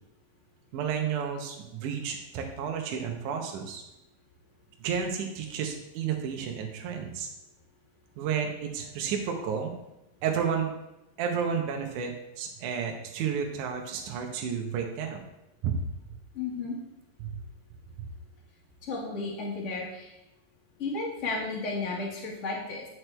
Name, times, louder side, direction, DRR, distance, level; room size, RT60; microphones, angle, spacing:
voice 1, 0.7-3.8 4.8-7.3 8.2-9.7 10.2-10.7 11.2-15.3 15.6-15.8 17.2-17.4 18.0-18.1, right 7 dB, 70° right, 2 dB, 2.3 m, -31 dB
voice 2, 16.3-16.8 18.9-20.1 20.8-22.8, left 3 dB, 35° left, -4 dB, 1.2 m, -33 dB
9.4 x 6.1 x 3.3 m, 0.91 s
omnidirectional pair, 4.0 m